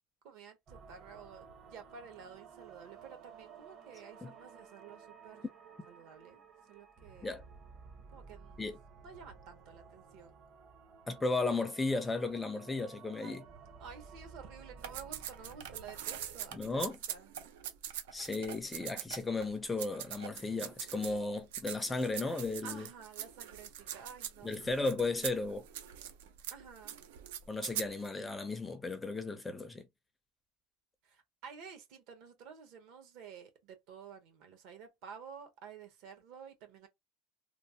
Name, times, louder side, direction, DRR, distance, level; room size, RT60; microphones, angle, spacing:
voice 1, 0.2-5.4 5.9-6.4 6.7-7.3 8.1-8.6 9.0-10.4 13.2-13.4 13.8-17.3 22.6-24.5 26.5-26.9 31.0-36.9, right 6 dB, 60° right, 1.0 m, -51 dB
sound 1, 0.7-16.8, right 5 dB, 40° right, 0.8 m, -55 dB
voice 2, 11.1-13.4 16.5-17.0 18.1-22.9 24.4-25.6 27.5-29.9, left 3 dB, 10° left, 0.4 m, -35 dB
sound 2, 14.8-19.5 19.8-21.2 21.5-28.1, right 10 dB, 85° right, 0.5 m, -43 dB
3.1 x 2.0 x 2.7 m
supercardioid pair, 145°, 0 cm